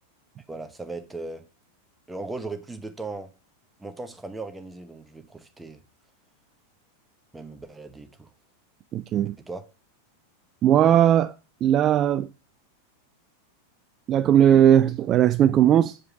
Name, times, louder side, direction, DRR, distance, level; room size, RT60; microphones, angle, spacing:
voice 1, 0.5-1.4 2.1-3.3 3.8-5.8 7.3-8.3 9.5-9.7, right 3 dB, 5° right, 0.9 m, -37 dB
voice 2, 8.9-9.4 10.6-11.3 11.6-12.3 14.1-16.0, right 10 dB, 30° right, 0.3 m, -18 dB
7.4 x 4.9 x 4.6 m
figure-of-eight pair, 90°, 0 cm